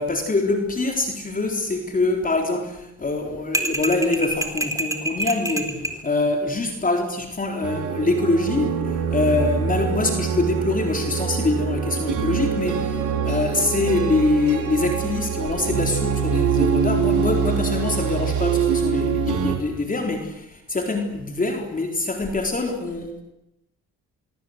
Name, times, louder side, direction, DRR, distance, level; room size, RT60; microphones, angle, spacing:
voice 1, 0.0-23.2, left 2 dB, 25° left, 3 dB, 4.1 m, -24 dB
sound 1, 3.5-6.0, right 1 dB, 10° right, 4.0 m, -26 dB
sound 2, 7.6-19.6, right 6 dB, 75° right, 4.6 m, -24 dB
25.5 x 23.5 x 8.1 m, 0.84 s
cardioid pair, 90°, 30 cm